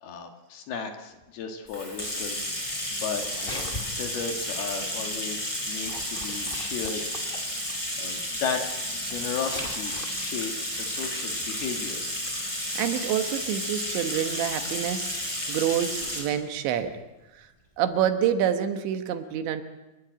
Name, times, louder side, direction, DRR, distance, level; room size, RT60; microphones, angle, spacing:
voice 1, 0.0-2.8 3.0-3.7 4.0-7.0 7.7-8.6 8.9-12.0, left 6 dB, 65° left, 5 dB, 3.3 m, -35 dB
Bathtub (filling or washing), 1.7-16.3, left 1 dB, 5° left, 4.0 m, -32 dB
sound 1, 3.2-4.1 5.8-7.5 9.1-10.1, left 2 dB, 35° left, 0.8 m, -39 dB
voice 2, 12.8-17.0 17.4-17.5 17.8-19.6, right 9 dB, 75° right, 8 dB, 3.5 m, -27 dB
29.0 x 11.5 x 9.1 m, 1.1 s
omnidirectional pair, 5.4 m